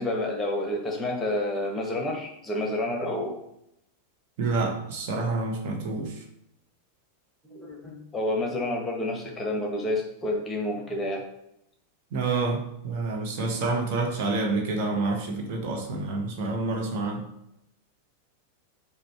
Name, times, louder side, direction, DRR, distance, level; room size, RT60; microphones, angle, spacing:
voice 1, 0.0-3.4 7.4-11.2, left 1 dB, 15° left, 0 dB, 1.0 m, -29 dB
voice 2, 4.4-6.2 12.1-17.2, right 3 dB, 45° right, 1 dB, 0.8 m, -28 dB
5.0 x 2.2 x 4.6 m, 0.79 s
figure-of-eight pair, 90°, 0 cm